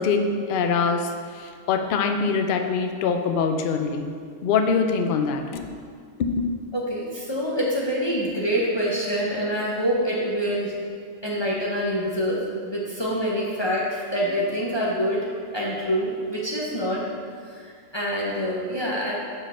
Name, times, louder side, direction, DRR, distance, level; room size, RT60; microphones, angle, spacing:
voice 1, 0.0-4.1 4.4-5.7 6.2-6.5, left 5 dB, 60° left, 6 dB, 0.5 m, -24 dB
voice 2, 6.7-10.7 11.2-15.2 15.5-17.0 17.5-19.1, equal, 25° left, -5 dB, 0.8 m, -26 dB
5.1 x 4.9 x 5.6 m, 2.1 s
omnidirectional pair, 1.3 m